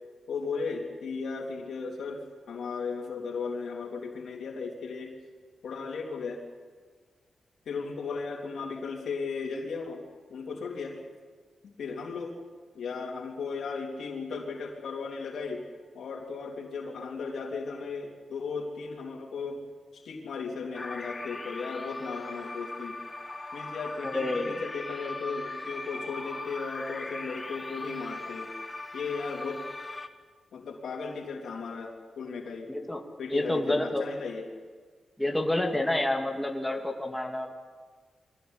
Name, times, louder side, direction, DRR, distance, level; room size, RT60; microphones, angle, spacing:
voice 1, 0.3-5.2 5.6-6.4 7.7-10.0 10.3-11.0 11.6-12.4 12.8-15.6 15.9-19.6 19.9-23.0 23.5-28.5 28.9-29.6 30.5-32.7 33.2-34.4, left 4 dB, 85° left, 0 dB, 3.5 m, -36 dB
sound 1, 20.7-30.1, left 2 dB, 25° left, 1.5 m, -39 dB
voice 2, 24.0-24.6 32.7-33.0 33.3-34.1 35.2-37.5, left 1 dB, 5° left, 2 dB, 2.6 m, -28 dB
23.5 x 16.5 x 9.9 m, 1.5 s
cardioid pair, 95°, 0 cm